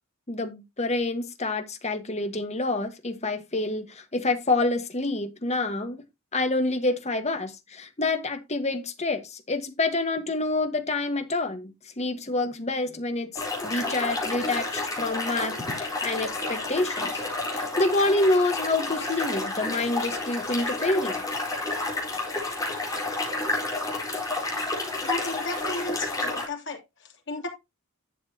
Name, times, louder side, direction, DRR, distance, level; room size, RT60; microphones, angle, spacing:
voice 1, 0.3-6.0 6.3-17.2 17.5-21.2, left 2 dB, 30° left, 1.5 m, -27 dB
sound 1, 13.4-26.5, left 2 dB, 15° left, 4.0 m, -30 dB
voice 2, 25.0-26.8 27.3-27.5, left 2 dB, 60° left, 3.0 m, -33 dB
11.0 x 7.3 x 2.9 m
head